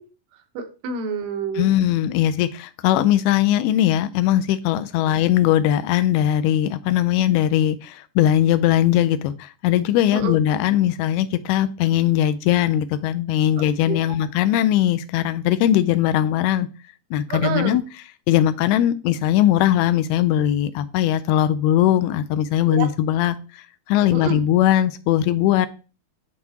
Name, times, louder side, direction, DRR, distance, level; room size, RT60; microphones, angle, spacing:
voice 1, 0.6-1.7 10.1-10.4 13.9-14.0 17.3-17.8 22.7-22.9 24.1-24.4, right 6 dB, 85° right, 5 dB, 3.1 m, -27 dB
voice 2, 1.6-16.7 17.1-17.8 18.3-23.4 23.9-25.7, left 12 dB, 85° left, 12 dB, 2.5 m, -20 dB
10.5 x 4.1 x 2.8 m, 0.33 s
omnidirectional pair, 4.5 m